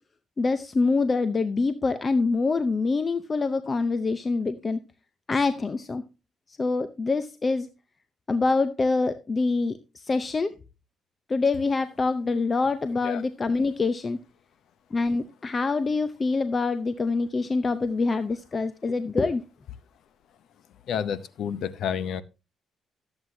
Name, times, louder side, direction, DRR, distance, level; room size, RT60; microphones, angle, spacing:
voice 1, 0.4-4.8 5.3-6.0 6.6-7.7 8.3-10.5 11.3-14.2 14.9-19.4, left 3 dB, 30° left, 0.6 m, -25 dB
voice 2, 20.9-22.2, left 8 dB, 75° left, 0.7 m, -30 dB
13.0 x 8.0 x 2.7 m
cardioid pair, 90°, 0 cm